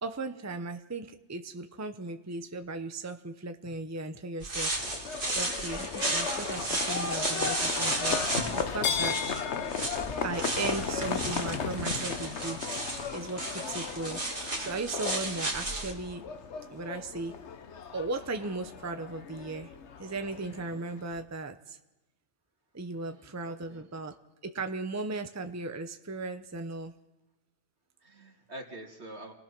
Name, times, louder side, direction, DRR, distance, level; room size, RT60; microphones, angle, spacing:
voice 1, 0.0-4.7 5.3-9.4 10.2-12.8 13.1-14.2 14.6-16.2 16.7-17.4 17.9-19.7 20.0-21.8 22.7-24.2 24.4-26.9, right 3 dB, 15° right, 7 dB, 0.8 m, -37 dB
sound 1, 4.4-15.9, right 2 dB, 50° right, 2.5 m, -34 dB
Livestock farm animals working animals, 4.8-21.2, left 6 dB, 85° left, 1.3 m, -35 dB
voice 2, 22.9-23.8 28.0-29.3, right 1 dB, 75° right, 1 dB, 2.9 m, -46 dB
28.0 x 18.5 x 6.1 m, 1.0 s
omnidirectional pair, 1.1 m